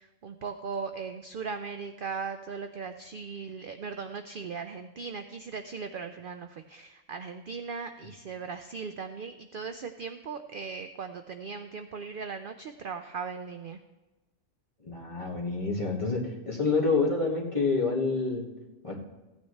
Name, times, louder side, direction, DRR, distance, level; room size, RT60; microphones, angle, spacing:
voice 1, 0.0-13.8, right 5 dB, 60° right, 8 dB, 0.6 m, -38 dB
voice 2, 14.8-18.5 18.8-18.9, left 4 dB, 25° left, -3 dB, 1.8 m, -28 dB
15.5 x 9.3 x 3.2 m, 1.1 s
omnidirectional pair, 1.4 m